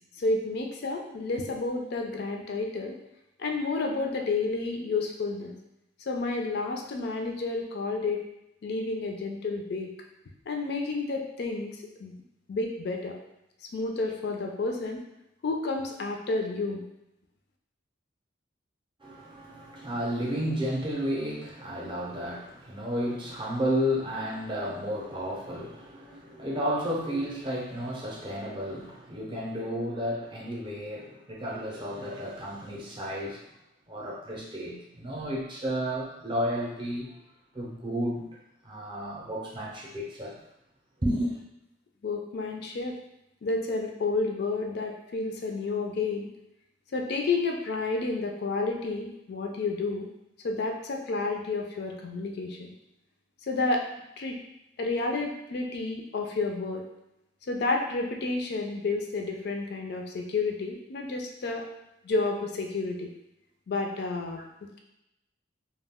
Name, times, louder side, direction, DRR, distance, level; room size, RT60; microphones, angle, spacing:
voice 1, 0.2-2.9 3.4-5.5 6.1-8.2 8.6-9.9 10.5-12.1 12.5-13.1 13.7-15.0 15.4-16.8 42.0-43.0 43.4-46.3 46.9-50.1 50.4-52.7 53.5-53.8 54.2-54.4 54.8-56.8 57.5-61.7 62.0-63.1 63.7-64.4, left 3 dB, 55° left, 2 dB, 0.4 m, -30 dB
voice 2, 19.0-33.4 33.9-37.2 37.5-38.3 38.6-40.4 41.0-41.4, equal, 25° right, -4 dB, 0.5 m, -32 dB
2.3 x 2.1 x 3.5 m, 0.86 s
head